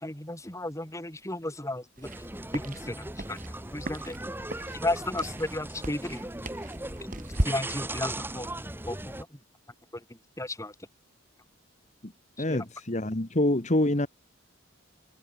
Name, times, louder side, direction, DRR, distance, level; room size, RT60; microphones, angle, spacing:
voice 1, 0.0-2.1 2.5-3.4 3.7-4.2 4.8-6.2 7.4-9.4 10.4-10.7 12.5-12.6, left 1 dB, 15° left, 5.5 m, -34 dB
sound 1, 2.0-9.2, right 1 dB, 10° right, 2.6 m, -38 dB
sound 2, 2.0-7.5, right 1 dB, 40° right, 3.8 m, -37 dB
voice 2, 12.4-14.1, left 1 dB, 35° left, 1.6 m, -26 dB
head